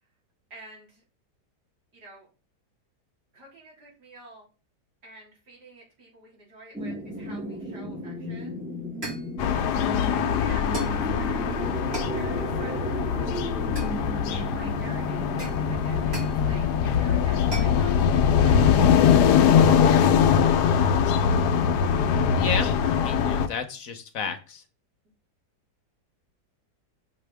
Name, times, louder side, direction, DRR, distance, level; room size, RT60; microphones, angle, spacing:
voice 1, 0.5-1.0 1.9-2.3 3.3-4.5 5.0-8.6 9.4-9.7 10.1-11.6 12.1-13.5 14.3-16.6 16.9-19.8, right 2 dB, 85° right, -4 dB, 3.9 m, -48 dB
sound 1, 6.7-17.2, equal, 5° right, 1.3 m, -34 dB
sound 2, 8.3-8.5 9.0-9.4 10.7-11.1 11.9-12.2 13.7-14.4 15.4-16.4 17.5-17.8, right 1 dB, 40° right, 4.0 m, -36 dB
sound 3, 9.4-23.5, left 7 dB, 85° left, 1.2 m, -22 dB
voice 2, 22.3-24.6, left 6 dB, 60° left, 8 dB, 1.2 m, -32 dB
6.3 x 6.1 x 3.4 m, 0.33 s
omnidirectional pair, 1.7 m